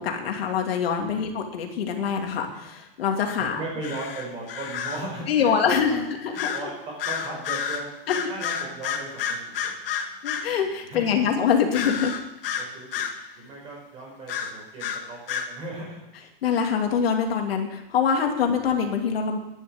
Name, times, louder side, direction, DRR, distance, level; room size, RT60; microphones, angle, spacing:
voice 1, 0.0-3.6 5.3-6.7 8.1-8.2 10.2-12.2 16.4-19.4, left 7 dB, 90° left, 2 dB, 2.9 m, -24 dB
voice 2, 3.4-6.0 6.3-9.4 9.8-9.9 10.5-10.6 10.9-11.3 12.4-13.0 13.3-16.0, right 2 dB, 20° right, -2 dB, 5.2 m, -37 dB
sound 1, 3.8-5.1 6.4-6.7 7.0-10.5 11.7-13.2 14.3-15.5, left 7 dB, 70° left, 1.9 m, -30 dB
11.0 x 10.5 x 8.1 m, 0.90 s
supercardioid pair, 180°, 29 cm